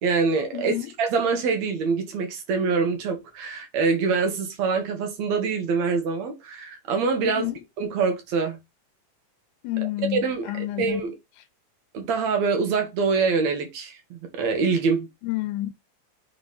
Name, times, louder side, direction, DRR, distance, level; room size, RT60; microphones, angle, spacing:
voice 1, 0.0-7.5 7.8-8.6 10.1-10.5 10.8-11.1 11.9-15.1, right 5 dB, 70° right, 2.4 m, -25 dB
voice 2, 0.5-0.9 7.2-7.6 9.6-11.1 11.4-11.5 15.2-15.7, left 15 dB, 85° left, 2.0 m, -29 dB
5.6 x 3.7 x 4.8 m
omnidirectional pair, 3.5 m